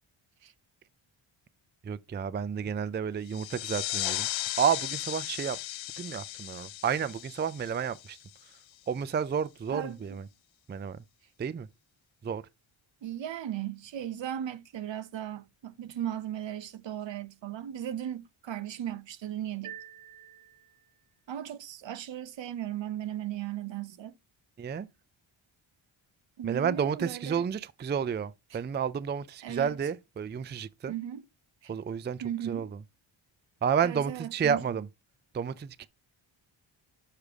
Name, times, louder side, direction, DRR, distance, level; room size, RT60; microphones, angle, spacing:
voice 1, 1.8-4.3 4.6-5.6 6.0-8.2 8.9-10.3 10.7-11.0 11.4-11.7 12.2-12.4 24.6-24.9 26.4-30.9 31.7-32.8 33.6-34.9 35.3-35.9, right 7 dB, 25° right, 0.4 m, -31 dB
sound 1, 3.3-8.6, left 15 dB, 70° left, 0.5 m, -36 dB
voice 2, 9.7-10.2 13.0-19.8 21.3-24.1 26.4-27.4 28.5-28.6 29.4-29.8 30.9-31.2 31.6-31.7 32.2-32.7 33.8-34.6, right 11 dB, 65° right, 0.8 m, -37 dB
sound 2, 19.6-21.1, right 10 dB, 90° right, 1.4 m, -47 dB
6.5 x 4.9 x 3.5 m
cardioid pair, 75°, 48 cm